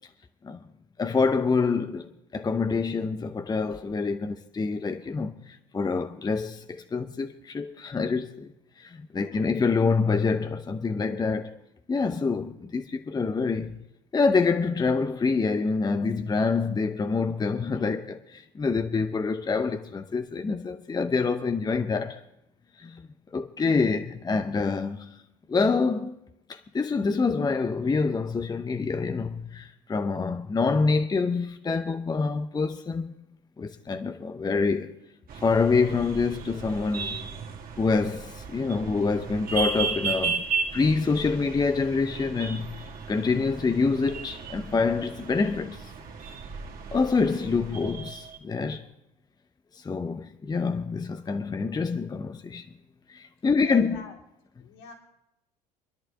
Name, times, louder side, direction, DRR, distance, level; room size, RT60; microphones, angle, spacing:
voice 1, 1.0-11.6 11.9-13.8 14.1-22.2 22.8-23.0 23.3-25.2 25.5-26.2 26.5-33.1 33.6-34.9 35.3-37.2 37.8-40.4 40.7-45.9 46.9-48.9 49.7-52.7 53.1-54.0, left 4 dB, 20° left, 0.8 m, -26 dB
voice 2, 9.1-9.5 53.6-54.2 54.6-54.9, left 5 dB, 70° left, 4.1 m, -43 dB
sound 1, 35.3-48.4, right 5 dB, 45° right, 2.2 m, -35 dB
25.5 x 11.0 x 3.7 m
hypercardioid pair, 65°, 21 cm